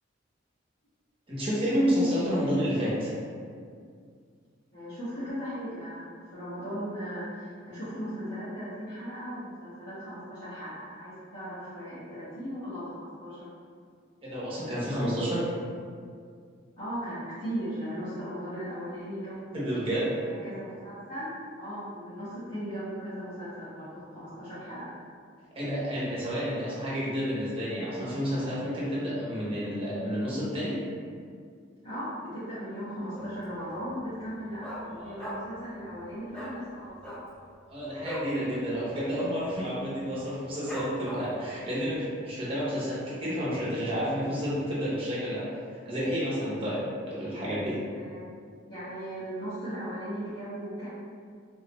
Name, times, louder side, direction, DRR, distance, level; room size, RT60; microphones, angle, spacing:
voice 1, 1.3-3.1 14.2-15.5 19.5-20.1 25.5-30.8 34.9-35.1 37.7-45.4 45.7-47.8, equal, 30° right, -8 dB, 0.9 m, -30 dB
voice 2, 4.7-13.4 16.8-19.8 20.2-21.3 21.6-24.9 31.8-36.9 47.9-48.3 48.7-50.9, equal, 60° left, -18 dB, 1.4 m, -37 dB
Dog, 33.1-33.6 33.8-33.9 34.2-35.6 35.9-36.0 36.3-36.6 36.9-38.4 38.7-38.9 39.1-39.5 40.0-40.1 40.7-41.5 41.9-42.0, equal, 5° left, 0.5 m, -39 dB
3.8 x 2.4 x 3.0 m, 2.1 s
head